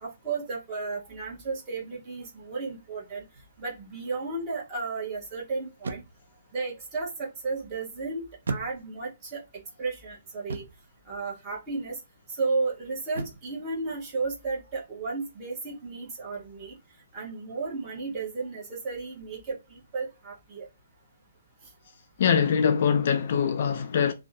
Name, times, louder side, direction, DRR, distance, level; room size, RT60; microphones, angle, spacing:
voice 1, 0.0-3.2 3.6-6.0 6.5-9.4 9.8-10.6 11.1-12.0 12.3-16.8 17.1-20.7, right 4 dB, 15° right, 0.9 m, -33 dB
sound 1, 3.4-3.7 5.8-6.4 8.5-9.2 10.5-10.9 13.1-13.6, right 4 dB, 80° right, 0.4 m, -36 dB
voice 2, 22.2-24.1, left 7 dB, 45° left, 0.3 m, -23 dB
2.6 x 2.1 x 2.7 m
hypercardioid pair, 175°, 0 cm